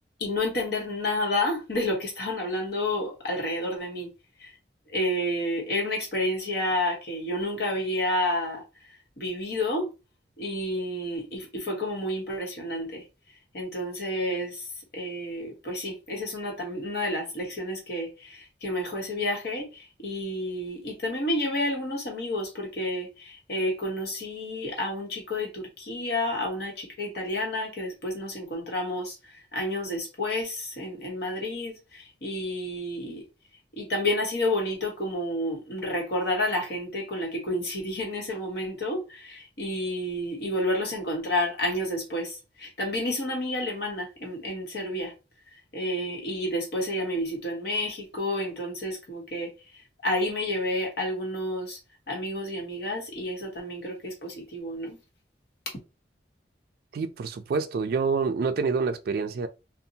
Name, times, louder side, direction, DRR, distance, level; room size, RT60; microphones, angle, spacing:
voice 1, 0.2-4.1 4.4-4.5 4.9-8.6 9.2-9.9 10.4-13.0 13.5-14.6 14.9-29.1 29.5-33.2 33.7-45.1 45.7-49.5 50.0-51.8 52.1-55.0, left 1 dB, 60° left, 1.0 m, -30 dB
voice 2, 56.9-59.5, right 5 dB, 55° right, 0.3 m, -27 dB
2.6 x 2.0 x 2.7 m
head